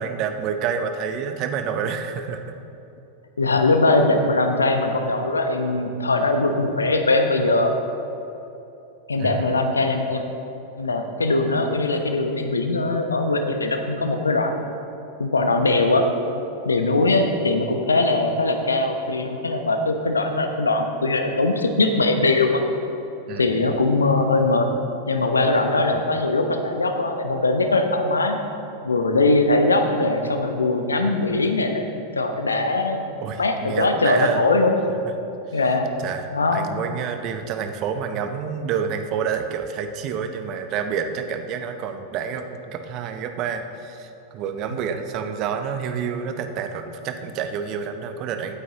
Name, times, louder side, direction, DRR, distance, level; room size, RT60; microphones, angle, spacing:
voice 1, 0.0-2.5 6.8-6.9 9.2-9.5 23.3-23.7 33.2-34.4 35.5-35.6 36.0-48.5, right 7 dB, 40° right, 7 dB, 0.8 m, -28 dB
voice 2, 3.4-7.7 9.1-10.2 10.8-14.7 15.2-16.0 16.6-22.6 23.4-24.7 25.1-28.4 28.8-31.8 32.1-34.7 35.5-35.9 36.3-36.6, left 2 dB, 75° left, 6 dB, 0.8 m, -21 dB
16.0 x 9.3 x 2.9 m, 3.0 s
figure-of-eight pair, 90°, 0 cm